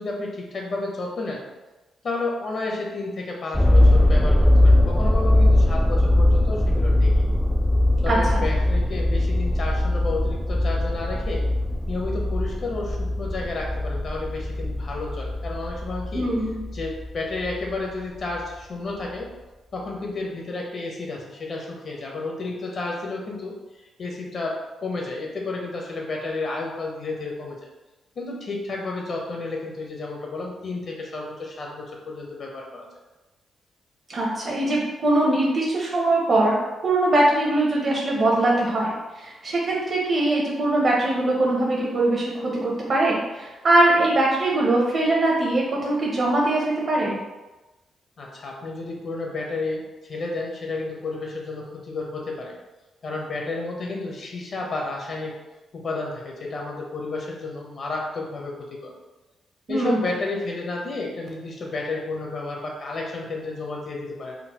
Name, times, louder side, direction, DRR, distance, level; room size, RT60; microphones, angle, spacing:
voice 1, 0.0-1.4 2.0-7.2 8.0-11.4 11.9-16.3 16.7-19.3 19.7-24.5 24.8-27.6 28.2-32.9 48.2-52.6 53.0-55.4 55.7-58.9 59.7-64.4, left 3 dB, 60° left, -1 dB, 0.8 m, -31 dB
sound 1, 3.5-17.7 18.3-18.4, left 1 dB, 5° left, 0.3 m, -21 dB
voice 2, 8.1-8.4 16.1-16.6 34.1-36.6 36.8-47.2 59.7-60.1, right 2 dB, 55° right, -3 dB, 0.7 m, -22 dB
3.8 x 2.0 x 2.9 m, 1.1 s
cardioid pair, 75°, 0 cm